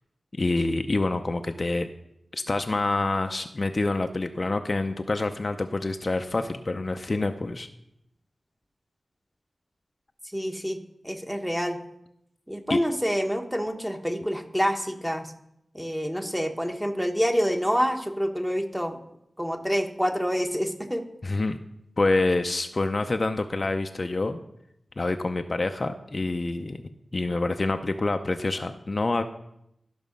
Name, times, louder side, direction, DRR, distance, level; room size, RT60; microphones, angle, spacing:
voice 1, 0.4-1.9 2.3-7.7 12.7-12.8 21.2-21.6 22.0-24.4 25.0-26.8 27.1-29.2, left 2 dB, 45° left, 6 dB, 0.6 m, -27 dB
voice 2, 10.3-10.8 11.0-11.8 12.5-15.3 15.7-19.0 19.4-21.1, equal, 5° right, 4 dB, 1.2 m, -27 dB
13.0 x 6.2 x 5.3 m, 0.80 s
wide cardioid pair, 75°, 0 cm